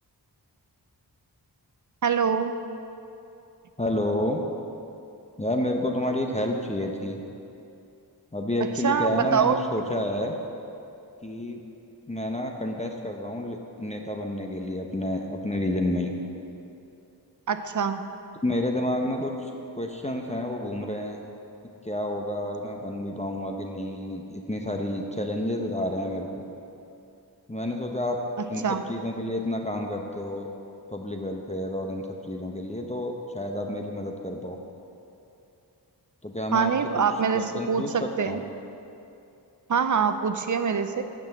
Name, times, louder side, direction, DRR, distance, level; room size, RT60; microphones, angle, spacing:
voice 1, 2.0-2.6 8.8-9.6 9.9-10.0 17.5-18.0 28.6-28.8 36.5-38.4 39.7-41.0, right 6 dB, 45° right, 9 dB, 0.6 m, -24 dB
voice 2, 3.8-4.4 5.4-7.2 8.3-10.4 11.2-11.6 12.1-16.1 18.4-19.5 19.8-21.2 21.8-26.5 27.5-28.2 28.5-30.5 30.9-34.6 36.2-37.0 37.3-38.4, left 1 dB, 15° left, 2 dB, 0.8 m, -30 dB
9.1 x 6.1 x 7.1 m, 2.7 s
wide cardioid pair, 75°, 41 cm